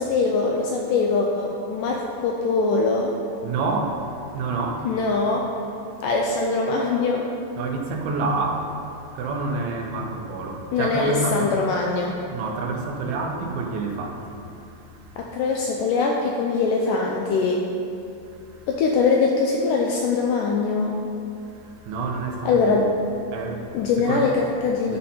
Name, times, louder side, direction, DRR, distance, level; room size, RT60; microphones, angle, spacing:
voice 1, 0.0-3.1 4.9-5.5 6.0-7.3 10.7-12.1 15.2-17.6 18.7-21.0 22.5-22.9 23.7-25.0, left 4 dB, 85° left, 0 dB, 1.9 m, -22 dB
voice 2, 3.4-5.0 5.9-6.0 7.6-11.5 12.3-15.3 18.2-18.7 21.4-22.8 23.3-24.3 24.9-25.0, right 3 dB, 90° right, 2 dB, 2.8 m, -29 dB
11.0 x 5.3 x 4.3 m, 2.6 s
omnidirectional pair, 4.3 m